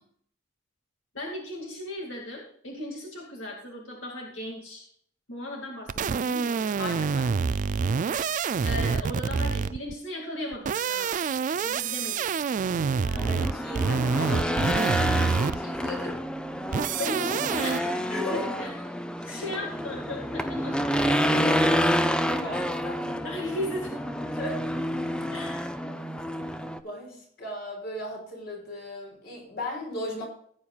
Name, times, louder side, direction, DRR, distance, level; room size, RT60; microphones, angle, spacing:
voice 1, 1.1-4.9 5.3-6.8 8.0-8.2 8.6-11.2 11.6-12.3 17.0-18.2 18.6-18.7 19.2-21.7 22.3-22.5 22.8-24.0 25.3-25.7, left 1 dB, 85° left, 0 dB, 2.3 m, -37 dB
sound 1, 5.9-9.9 10.5-15.8 16.7-17.8, right 5 dB, 40° right, 0.3 m, -27 dB
voice 2, 6.8-7.5 12.9-16.2 18.1-18.5 19.3-19.5 22.1-22.9 24.3-24.6 26.8-30.2, left 1 dB, 55° left, 1 dB, 4.1 m, -36 dB
Race car auto racing / Engine, 13.2-26.8, equal, 5° left, 0.6 m, -28 dB
17.0 x 8.8 x 2.4 m, 0.63 s
head